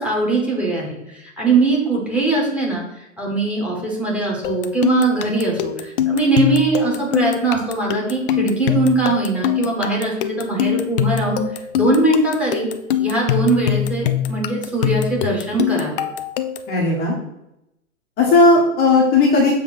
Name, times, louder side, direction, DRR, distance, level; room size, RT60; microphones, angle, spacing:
voice 1, 0.0-2.8 3.2-11.4 11.7-12.7 13.0-16.0, right 3 dB, 5° right, -4 dB, 1.9 m, -21 dB
sound 1, 4.4-16.8, left 11 dB, 40° left, 0.6 m, -23 dB
voice 2, 16.7-17.2 18.2-19.6, left 3 dB, 25° left, -2 dB, 1.3 m, -15 dB
7.4 x 3.5 x 5.9 m, 0.87 s
hypercardioid pair, 135°, 41 cm